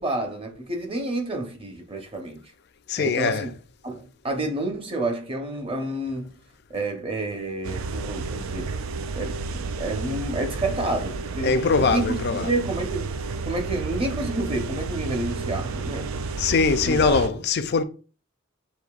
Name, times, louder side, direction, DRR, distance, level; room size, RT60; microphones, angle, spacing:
voice 1, 0.0-2.4 3.0-3.5 3.8-6.4 6.7-8.7 9.2-13.1 13.4-16.1 16.8-17.4, right 2 dB, 25° right, 0.8 m, -29 dB
voice 2, 2.9-3.5 11.4-12.5 16.4-17.8, left 4 dB, 55° left, 0.4 m, -22 dB
sound 1, 7.6-17.3, right 4 dB, 85° right, 0.4 m, -31 dB
6.5 x 2.7 x 2.4 m
head